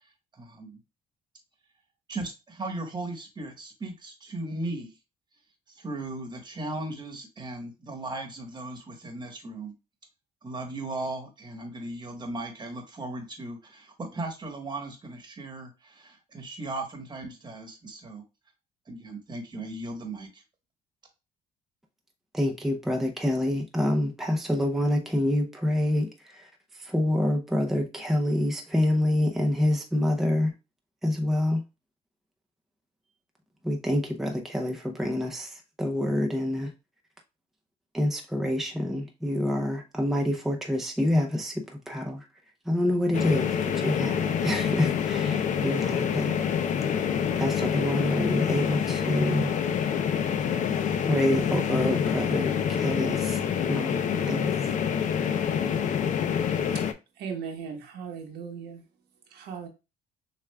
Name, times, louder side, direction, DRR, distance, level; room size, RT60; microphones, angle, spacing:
voice 1, 0.3-0.8 2.1-4.9 5.7-9.7 10.4-18.2 18.9-20.4, right 2 dB, 25° right, 1.1 m, -37 dB
voice 2, 22.3-26.5 26.8-30.5 31.0-31.6 33.6-36.7 37.9-42.2 42.7-46.3 47.4-49.5 51.1-53.4 53.7-54.0 54.3-54.5, left 1 dB, ahead, 0.6 m, -27 dB
sound 1, 43.1-56.9, left 8 dB, 50° left, 0.5 m, -27 dB
voice 3, 57.2-58.8 59.3-59.7, right 6 dB, 75° right, 1.1 m, -37 dB
6.4 x 2.4 x 2.2 m
cardioid pair, 110°, 17 cm